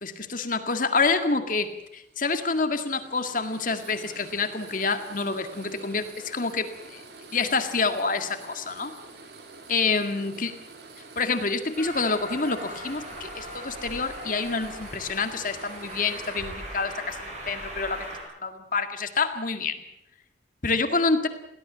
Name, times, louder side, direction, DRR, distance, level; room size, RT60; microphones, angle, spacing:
voice 1, 0.0-7.0 7.3-8.9 9.7-10.5 11.2-18.1 18.4-19.8 20.6-21.3, left 4 dB, 45° left, 7 dB, 2.0 m, -27 dB
sound 1, 1.6-17.2, right 3 dB, 60° right, 3.1 m, -47 dB
Train, 11.7-18.2, right 1 dB, 40° right, 7.9 m, -39 dB
22.0 x 17.0 x 7.4 m, 0.82 s
head